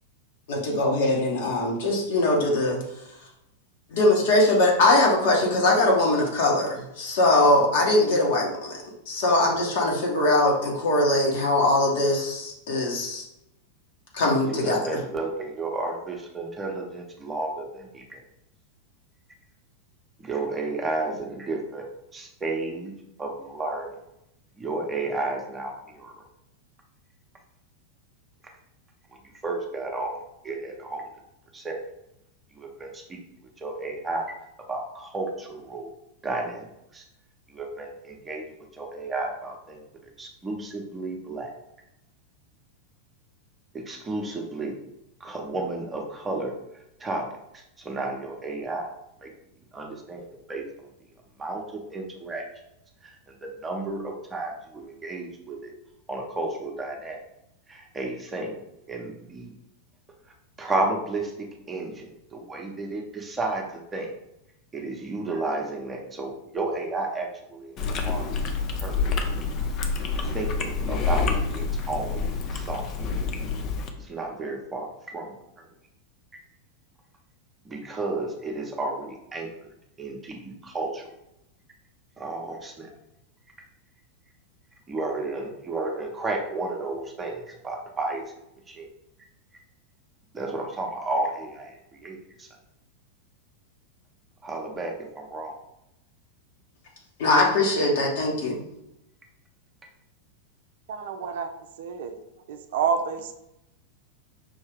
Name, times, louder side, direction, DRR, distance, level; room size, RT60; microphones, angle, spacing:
voice 1, 0.5-2.8 3.9-13.3 14.1-15.0 97.2-98.6, left 2 dB, 55° left, -1 dB, 1.2 m, -22 dB
voice 2, 14.4-18.2 20.2-21.8 22.1-22.9 23.2-24.0 24.6-26.2 29.4-31.0 31.5-31.8 32.5-34.3 34.7-35.9 36.2-36.7 36.9-37.0 37.5-38.4 38.7-41.5 43.7-44.7 45.2-46.5 47.0-47.3 47.5-48.9 49.2-49.3 49.7-50.7 51.4-52.5 53.0-55.7 56.1-57.2 57.7-58.6 58.9-59.5 60.6-64.1 64.7-67.7 68.0-68.3 68.8-69.0 70.3-72.9 74.0-75.6 77.6-79.5 80.0-81.0 82.2-82.9 84.9-88.2 88.7-88.9 90.3-92.5 94.4-95.6, right 2 dB, 15° right, 1 dB, 0.8 m, -32 dB
Chewing mastication, 67.8-73.9, left 4 dB, 35° left, 0.6 m, -27 dB
voice 3, 100.9-101.5 101.8-102.2 102.5-103.3, right 6 dB, 55° right, 8 dB, 0.4 m, -28 dB
5.5 x 2.7 x 3.5 m, 0.85 s
figure-of-eight pair, 90°, 0 cm